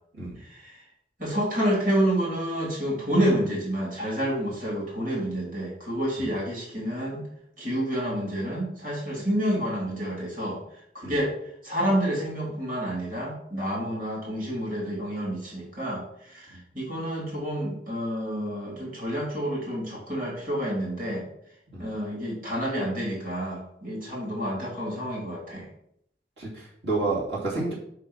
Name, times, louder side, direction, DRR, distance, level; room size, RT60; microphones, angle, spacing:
voice 1, 0.4-0.8 1.2-7.3 7.6-10.6 10.9-11.3 11.6-21.2 21.8-25.7, equal, 50° right, -4 dB, 3.0 m, -29 dB
voice 2, 26.4-27.7, right 3 dB, 85° right, -7 dB, 2.9 m, -30 dB
5.6 x 5.2 x 5.5 m, 0.71 s
head